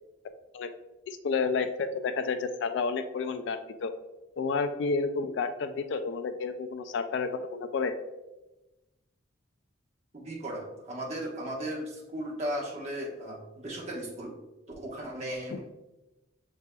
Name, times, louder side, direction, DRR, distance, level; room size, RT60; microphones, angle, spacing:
voice 1, 1.1-3.9 4.4-7.9 15.5-15.6, left 4 dB, 65° left, 10 dB, 0.3 m, -30 dB
voice 2, 10.1-14.3 14.8-15.6, right 1 dB, 35° right, -4 dB, 1.1 m, -36 dB
6.6 x 3.3 x 2.2 m, 1.0 s
head